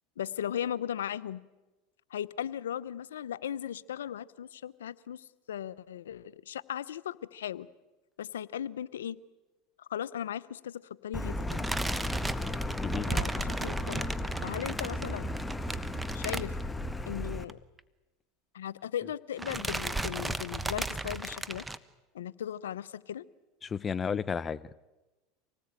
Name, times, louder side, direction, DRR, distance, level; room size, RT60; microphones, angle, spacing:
voice 1, 0.2-1.4 2.1-7.7 8.2-9.2 9.8-11.7 13.1-14.1 14.4-15.3 16.1-16.5 17.1-17.6 18.5-21.7 22.1-23.3, left 10 dB, 85° left, 17 dB, 0.8 m, -37 dB
Car, 11.1-17.4, left 1 dB, 10° left, 1.3 m, -35 dB
sound 1, 11.5-17.1 17.3-17.5 17.8-17.9 18.8-19.1 19.4-21.8, right 2 dB, 10° right, 1.1 m, -35 dB
voice 2, 23.6-24.7, left 6 dB, 25° left, 19 dB, 0.7 m, -32 dB
26.0 x 18.5 x 9.0 m, 1.1 s
hypercardioid pair, 100°, 0 cm